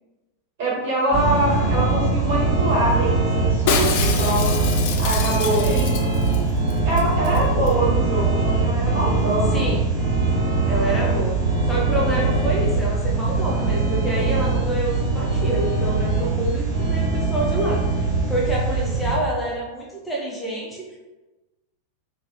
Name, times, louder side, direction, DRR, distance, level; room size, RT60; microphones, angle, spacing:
voice 1, 0.6-4.6 5.0-5.9 6.3-6.5 6.8-9.7, right 1 dB, 50° right, -6 dB, 1.5 m, -24 dB
voice 2, 1.1-1.8 5.5-5.9 9.5-10.0 10.7-11.4 11.7-21.0, right 1 dB, 10° left, -4 dB, 0.6 m, -28 dB
sound 1, 1.1-19.2, right 3 dB, 35° right, 0.9 m, -22 dB
Shatter, 3.7-6.4 6.7-6.8 7.0-7.4 7.7-7.8, left 6 dB, 50° left, 0.4 m, -26 dB
3.0 x 3.0 x 2.5 m, 1.1 s
figure-of-eight pair, 90°, 0 cm